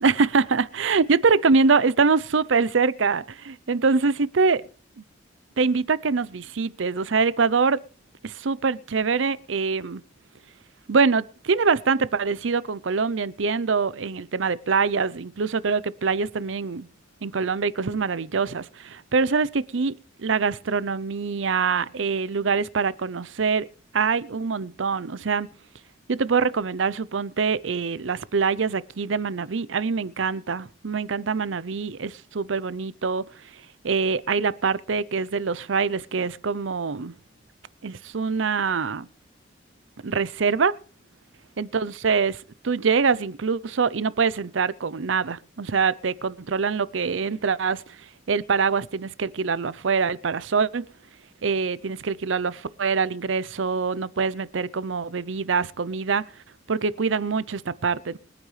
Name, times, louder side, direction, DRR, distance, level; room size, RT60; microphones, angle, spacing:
voice 1, 0.0-4.6 5.6-7.8 8.2-10.0 10.9-16.9 17.2-23.7 23.9-25.5 26.1-33.2 33.8-37.1 37.8-39.1 40.0-40.8 41.6-48.0 48.3-50.9 51.4-56.2 56.7-58.2, right 5 dB, 85° right, 0.6 m, -24 dB
23.5 x 9.2 x 3.3 m
head